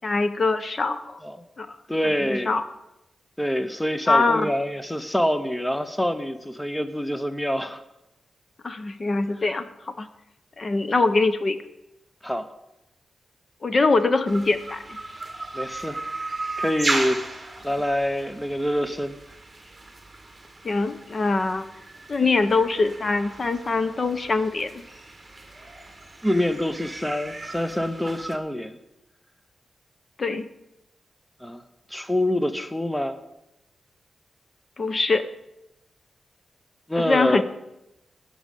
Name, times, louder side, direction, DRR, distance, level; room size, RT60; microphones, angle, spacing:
voice 1, 0.0-1.2 1.6-1.8 2.2-2.6 4.1-4.5 8.6-10.1 10.6-11.6 13.6-15.0 20.6-21.6 22.1-24.8 30.2-30.5 34.8-35.3 37.0-37.4, left 3 dB, 40° left, 11 dB, 0.7 m, -23 dB
voice 2, 1.9-2.5 3.4-7.8 12.2-12.5 15.5-16.0 16.6-19.1 26.2-28.8 31.4-31.6 31.9-33.2 36.9-37.4, left 1 dB, 5° left, 10 dB, 0.7 m, -26 dB
sound 1, 14.3-28.4, right 2 dB, 15° right, 1.7 m, -36 dB
14.5 x 6.4 x 8.2 m, 0.91 s
wide cardioid pair, 130°, 0 cm